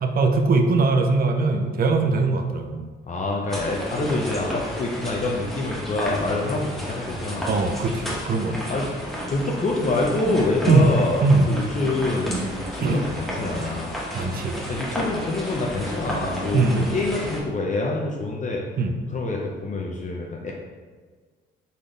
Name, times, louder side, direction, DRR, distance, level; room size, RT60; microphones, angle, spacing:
voice 1, 0.0-2.9 7.5-8.6 10.7-10.9 11.2-11.5 12.8-13.0 14.1-14.7 16.5-17.0 18.8-19.0, right 3 dB, 50° right, 5 dB, 0.6 m, -21 dB
voice 2, 3.1-7.5 8.7-8.8 9.3-14.0 14.7-18.6 19.1-20.5, left 2 dB, 40° left, -1 dB, 0.6 m, -26 dB
sound 1, 3.5-17.4, equal, ahead, 1.2 m, -32 dB
4.1 x 3.2 x 3.8 m, 1.4 s
cardioid pair, 90°, 20 cm